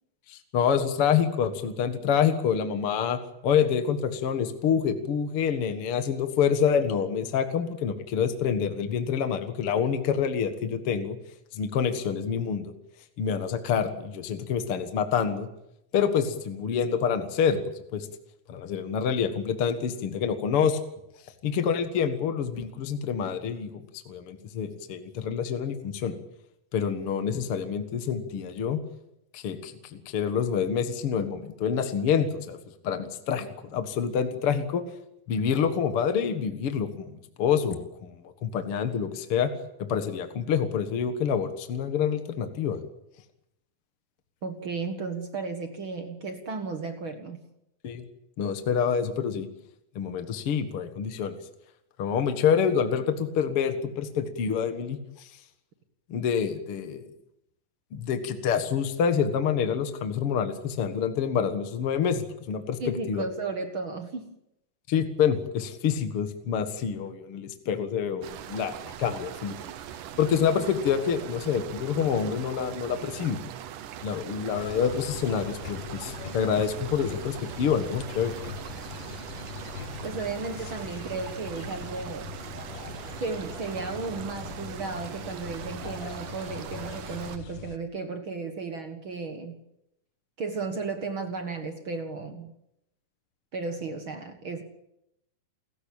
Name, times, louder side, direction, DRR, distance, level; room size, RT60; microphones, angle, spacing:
voice 1, 0.3-11.2 11.5-12.7 13.2-15.5 15.9-18.1 18.5-20.8 21.4-23.7 24.1-26.2 26.7-28.8 29.3-32.6 32.8-34.8 35.3-39.5 39.8-42.8 47.8-48.0 48.4-49.5 50.0-51.4 52.0-55.3 56.1-57.0 57.9-62.8 63.1-63.2 64.9-68.7 69.0-69.5 70.2-73.4 74.0-78.3, left 7 dB, 50° left, 8 dB, 2.0 m, -27 dB
voice 2, 44.4-47.4 62.8-64.3 80.0-82.3 83.2-89.6 90.4-92.5 93.5-94.6, right 4 dB, 45° right, 7 dB, 1.8 m, -34 dB
sound 1, 68.2-87.4, right 10 dB, 70° right, 2.5 m, -41 dB
sound 2, 74.5-87.8, left 8 dB, 75° left, 1.0 m, -42 dB
28.5 x 15.5 x 8.8 m, 0.83 s
omnidirectional pair, 4.1 m